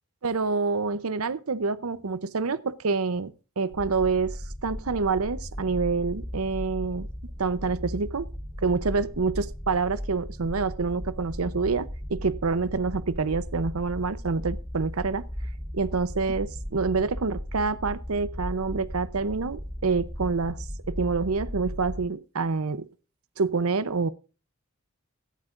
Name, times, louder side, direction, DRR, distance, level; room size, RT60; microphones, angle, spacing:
voice 1, 0.2-7.1 7.4-8.3 8.6-15.3 15.7-22.9 23.4-24.1, right 4 dB, 90° right, 0.7 m, -27 dB
sound 1, 3.7-22.0, equal, 5° right, 1.1 m, -37 dB
17.0 x 12.0 x 2.5 m
head